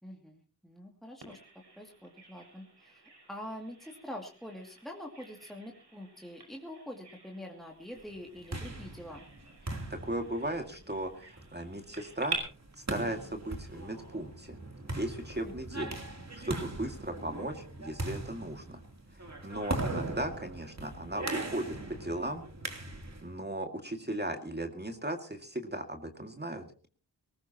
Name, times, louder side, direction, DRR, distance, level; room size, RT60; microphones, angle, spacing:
voice 1, 0.0-3.0 3.3-9.3 15.4-15.5 19.7-19.9, left 1 dB, ahead, 0 dB, 2.5 m, -45 dB
Bird vocalization bird call bird song, 1.2-12.4, right 3 dB, 80° right, 5.7 m, -47 dB
sound 1, 8.2-23.3, right 2 dB, 40° right, 3.1 m, -40 dB
voice 2, 9.9-12.4 12.9-14.6 14.9-16.0 16.3-18.8 19.2-22.4 23.2-26.9, right 1 dB, 25° right, 4 dB, 2.1 m, -37 dB
19.5 x 19.0 x 2.9 m, 0.39 s
cardioid pair, 50°, 40 cm